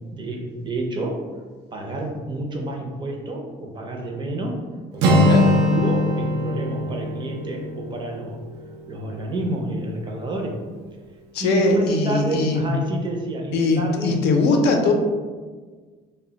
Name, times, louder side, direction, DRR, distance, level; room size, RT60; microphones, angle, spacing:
voice 1, 0.1-1.3 1.7-4.6 4.9-8.4 8.9-10.6 11.4-14.3, right 2 dB, 30° right, 1 dB, 0.5 m, -29 dB
Acoustic guitar, 5.0-8.9, left 1 dB, 90° right, 0.4 m, -21 dB
voice 2, 5.2-5.5 11.3-12.8 13.5-14.9, left 3 dB, 75° left, 2 dB, 0.5 m, -20 dB
2.1 x 2.1 x 3.7 m, 1.4 s
cardioid pair, 110°, 17 cm